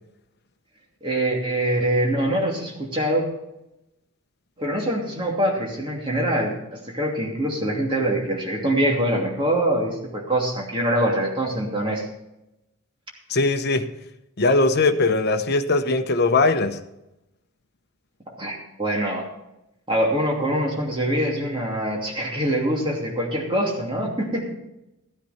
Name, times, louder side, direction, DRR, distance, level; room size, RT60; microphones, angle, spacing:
voice 1, 1.0-3.3 4.6-12.1 18.4-19.2 19.9-24.5, right 1 dB, 25° right, 2.7 m, -24 dB
voice 2, 13.3-13.9 14.4-16.8, left 3 dB, 50° left, 0.9 m, -20 dB
15.0 x 10.0 x 4.3 m
head